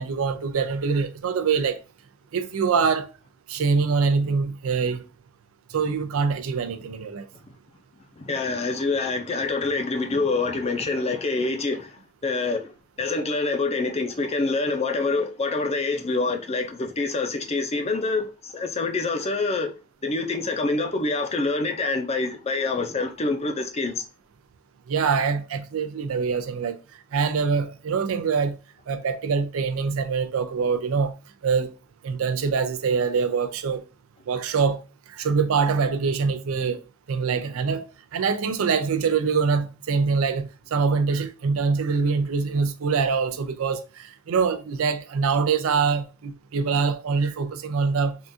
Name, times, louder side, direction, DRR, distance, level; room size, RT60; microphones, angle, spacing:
voice 1, 0.0-1.8 2.3-3.1 3.5-5.0 5.7-7.3 24.9-26.8 27.1-28.6 28.9-31.1 31.4-31.7 32.0-33.8 34.3-34.8 35.1-36.8 37.1-37.9 38.1-48.2, right 5 dB, 80° right, 0.4 m, -24 dB
voice 2, 8.2-12.7 13.0-19.7 20.0-24.0, left 3 dB, 30° left, 0.5 m, -26 dB
3.6 x 2.4 x 2.6 m
head